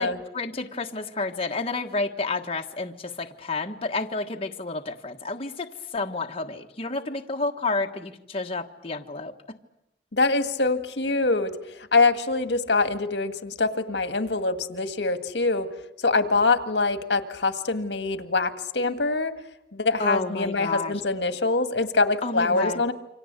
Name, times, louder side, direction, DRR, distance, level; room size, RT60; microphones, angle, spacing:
voice 1, 0.0-9.6 20.0-21.0 22.2-22.8, left 3 dB, 35° left, 3 dB, 1.5 m, -30 dB
voice 2, 10.1-11.5 11.9-15.7 16.0-19.3 19.7-22.9, left 3 dB, 70° left, 9 dB, 1.9 m, -24 dB
28.5 x 25.5 x 8.3 m, 0.84 s
head